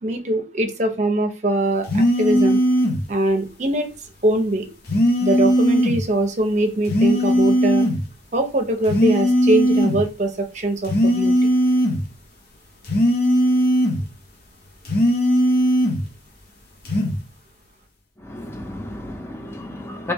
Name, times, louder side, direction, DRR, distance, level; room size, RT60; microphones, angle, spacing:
voice 1, 0.0-2.6 3.1-3.9 4.2-4.7 5.2-7.9 8.3-11.4, right 1 dB, 40° right, 0.7 m, -22 dB
sound 1, 1.9-3.0 4.9-6.0 6.9-8.0 8.9-10.0 10.8-12.0 12.9-14.0 14.8-16.0 16.8-17.2, equal, 55° left, 0.9 m, -18 dB
voice 2, 18.2-20.1, left 1 dB, 15° left, 0.6 m, -32 dB
3.2 x 3.0 x 3.5 m
head